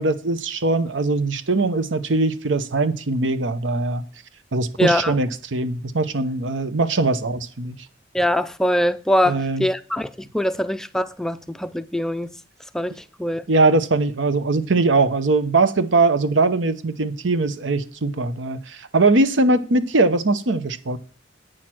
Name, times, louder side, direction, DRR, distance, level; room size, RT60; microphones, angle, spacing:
voice 1, 0.0-4.0 4.5-7.8 9.3-9.6 13.5-21.0, right 3 dB, 85° right, 0.9 m, -21 dB
voice 2, 4.8-5.2 8.1-12.3 12.7-13.5, left 1 dB, 5° left, 0.3 m, -23 dB
9.0 x 6.6 x 6.0 m
head